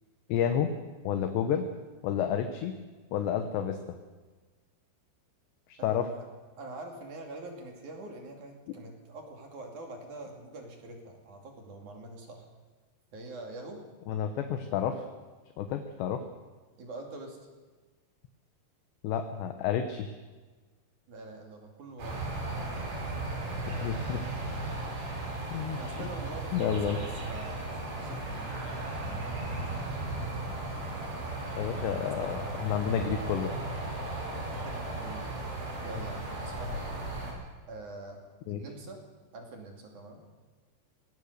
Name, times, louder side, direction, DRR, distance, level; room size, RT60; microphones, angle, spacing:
voice 1, 0.3-0.7 1.0-1.7 2.0-2.7 3.1-3.8 5.7-6.1 14.1-15.0 15.6-16.2 19.0-20.1 23.7-24.2 24.6-24.7 25.5-26.1 26.5-27.0 31.5-33.5 38.5-38.6, left 8 dB, 75° left, 7 dB, 3.0 m, -30 dB
voice 2, 5.8-6.3 6.6-12.5 13.1-13.8 16.8-17.4 21.1-22.9 23.8-24.3 25.7-29.6 33.0-33.2 34.3-35.3 35.8-36.9 37.7-39.0 39.3-40.2, right 2 dB, 45° right, 2 dB, 3.5 m, -45 dB
sound 1, 22.0-37.3, right 2 dB, 70° right, 7.8 m, -36 dB
22.0 x 18.0 x 6.7 m, 1.3 s
omnidirectional pair, 5.5 m